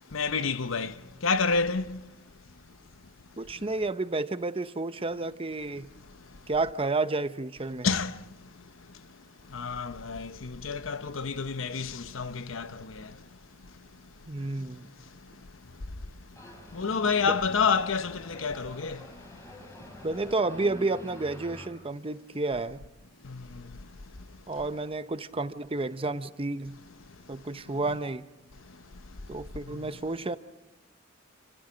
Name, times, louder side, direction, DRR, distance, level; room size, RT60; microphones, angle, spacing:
voice 1, 0.1-0.9 1.2-2.0 7.8-8.1 9.5-12.7 16.7-19.0 23.3-23.4, left 5 dB, 80° left, 0.9 m, -28 dB
voice 2, 3.4-5.9 6.5-7.9 14.3-14.9 20.0-22.8 24.5-26.8 27.3-28.2 29.3-30.4, right 3 dB, 30° right, 0.8 m, -31 dB
sound 1, 16.3-21.7, equal, 15° left, 5.3 m, -47 dB
29.0 x 26.5 x 5.1 m
head